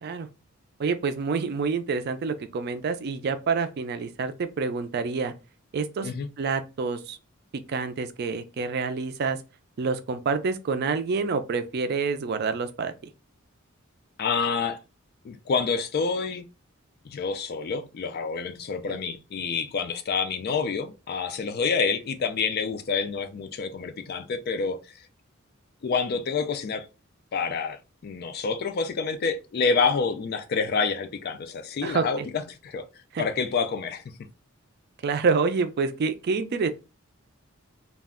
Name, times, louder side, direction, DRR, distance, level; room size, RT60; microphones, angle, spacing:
voice 1, 0.8-5.3 5.7-6.1 6.4-7.2 7.7-9.4 9.8-13.1 18.9-19.0 31.8-32.3 33.1-33.2 35.0-36.7, right 4 dB, 50° right, 0.4 m, -27 dB
voice 2, 14.2-14.8 15.2-16.4 17.0-24.8 25.8-26.9 27.3-32.8 33.2-34.0, left 5 dB, 50° left, 0.4 m, -28 dB
2.3 x 2.1 x 3.5 m
head